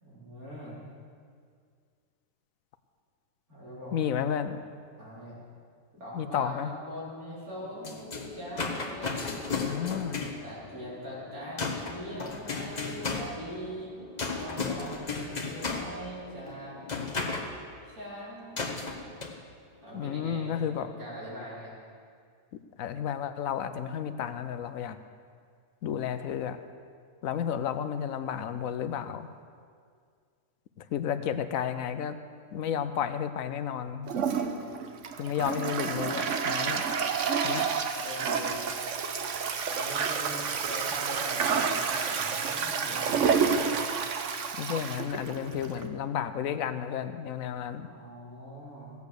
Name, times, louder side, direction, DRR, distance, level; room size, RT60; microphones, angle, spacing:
voice 1, 0.0-0.8 3.5-3.9 5.0-5.4 6.0-9.7 10.4-13.9 14.3-16.8 17.8-18.7 18.9-19.2 19.8-21.7 30.9-31.7 38.0-38.5 39.7-43.7 47.8-48.9, equal, 85° right, -7 dB, 4.3 m, -42 dB
voice 2, 3.9-4.6 6.1-6.7 9.6-10.3 19.9-20.9 22.8-25.0 25.8-26.6 27.2-29.3 30.8-32.2 32.5-34.1 35.2-36.8 37.4-37.7 44.6-47.9, left 8 dB, 75° left, 10 dB, 1.0 m, -32 dB
sound 1, 7.6-17.5 18.6-19.3, left 4 dB, 35° left, 1.1 m, -35 dB
Toilet flush, 34.1-45.9, right 6 dB, 60° right, 1.1 m, -29 dB
15.5 x 8.2 x 6.7 m, 2.1 s
omnidirectional pair, 1.5 m